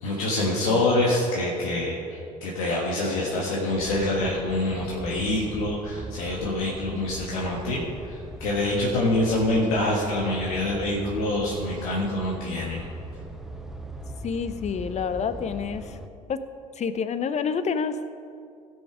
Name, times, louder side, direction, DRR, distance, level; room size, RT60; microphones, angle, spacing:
voice 1, 0.0-12.8, left 1 dB, 75° left, -3 dB, 1.5 m, -26 dB
sound 1, 3.7-16.1, equal, ahead, 0.8 m, -40 dB
voice 2, 14.2-16.0 16.3-16.4 16.8-18.1, left 6 dB, 40° left, 12 dB, 0.8 m, -28 dB
16.5 x 6.3 x 5.0 m, 2.4 s
hypercardioid pair, 60°, 18 cm